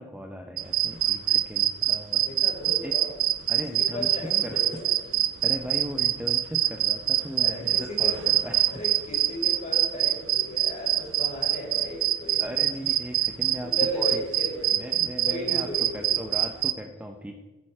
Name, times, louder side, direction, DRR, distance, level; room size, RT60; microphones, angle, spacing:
voice 1, 0.0-2.2 2.7-3.0 3.5-4.8 5.4-8.7 12.4-14.1 14.7-15.7 15.9-17.4, equal, 5° right, 3 dB, 0.6 m, -38 dB
sound 1, 0.6-16.7, right 13 dB, 60° right, 0.6 m, -24 dB
voice 2, 2.1-3.2 3.8-5.0 7.4-8.2 8.7-12.6 13.6-16.2, equal, 30° left, -2 dB, 4.5 m, -35 dB
14.5 x 11.0 x 4.4 m, 1.2 s
head